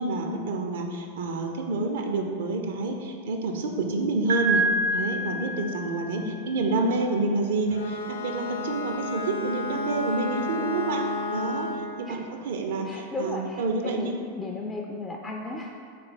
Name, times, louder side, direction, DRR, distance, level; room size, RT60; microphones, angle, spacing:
voice 1, 0.0-4.7 4.9-11.7 12.0-14.1, right 2 dB, 55° right, 3 dB, 0.5 m, -28 dB
Piano, 4.3-6.2, right 1 dB, 75° right, 0.9 m, -27 dB
Bowed string instrument, 7.7-12.0, left 2 dB, 75° left, 0.7 m, -32 dB
voice 2, 12.9-15.8, left 3 dB, 15° left, 0 dB, 0.3 m, -35 dB
3.7 x 3.3 x 4.2 m, 2.1 s
figure-of-eight pair, 90°, 0 cm